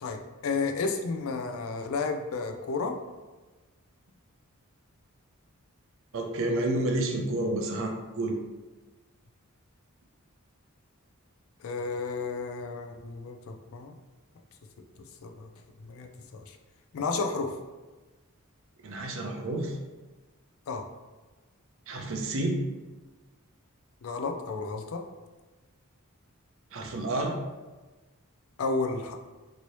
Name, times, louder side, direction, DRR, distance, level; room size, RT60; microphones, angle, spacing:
voice 1, 0.0-2.9 11.6-13.4 13.7-13.9 15.2-15.5 15.9-16.1 16.3-16.4 16.9-17.5 20.7-20.8 24.0-25.0 28.6-29.1, left 4 dB, 65° left, 4 dB, 0.4 m, -31 dB
voice 2, 6.1-8.3 18.8-19.7 21.9-22.6 26.7-27.3, right 2 dB, 60° right, 2 dB, 0.5 m, -30 dB
3.0 x 2.7 x 3.0 m, 1.2 s
head